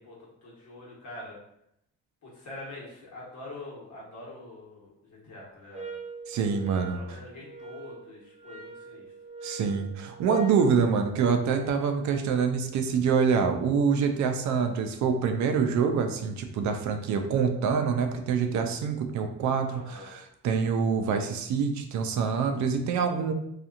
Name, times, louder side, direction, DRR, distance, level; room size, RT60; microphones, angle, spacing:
voice 1, 0.0-1.3 2.2-5.9 6.9-9.1 19.7-20.1, left 2 dB, 70° left, -4 dB, 1.2 m, -45 dB
sound 1, 5.7-10.7, right 4 dB, 20° right, 0.6 m, -44 dB
voice 2, 6.3-7.0 9.4-23.3, right 6 dB, 70° right, 5 dB, 0.5 m, -26 dB
2.8 x 2.4 x 2.4 m, 0.76 s
cardioid pair, 90°, 30 cm